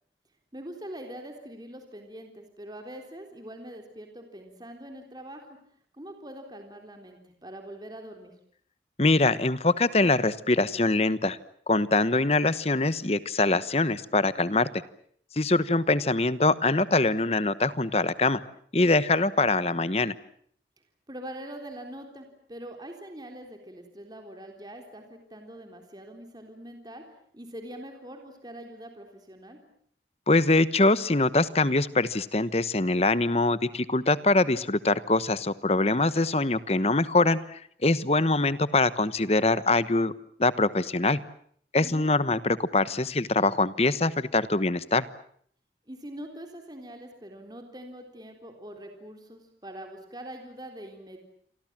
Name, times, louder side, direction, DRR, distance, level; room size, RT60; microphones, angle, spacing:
voice 1, 0.5-5.6 5.9-8.3 15.5-15.7 21.1-27.0 27.3-29.6 41.8-42.1 45.9-51.2, right 1 dB, 25° right, 4 dB, 3.7 m, -43 dB
voice 2, 9.0-11.4 11.7-14.7 15.4-18.4 18.7-20.1 30.3-40.1 40.4-41.2 41.7-45.0, left 2 dB, 35° left, 15 dB, 1.1 m, -23 dB
29.0 x 24.5 x 7.5 m, 0.62 s
head